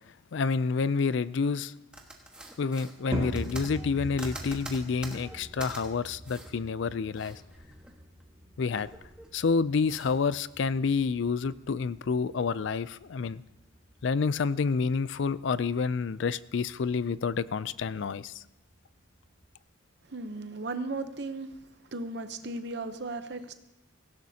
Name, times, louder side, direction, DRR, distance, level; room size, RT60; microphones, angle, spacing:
voice 1, 0.3-1.7 2.6-7.4 8.6-8.9 9.3-13.4 14.0-18.4, left 5 dB, 65° left, 17 dB, 0.4 m, -28 dB
sound 1, 1.9-5.8 6.2-6.5 6.9-8.2 8.5-9.4 9.9-10.1, right 1 dB, 5° right, 1.4 m, -45 dB
sound 2, 3.1-19.5, equal, 25° right, 2.3 m, -44 dB
voice 2, 20.0-21.6 21.9-23.5, right 2 dB, 55° right, 9 dB, 0.8 m, -36 dB
17.0 x 16.0 x 2.8 m, 0.88 s
head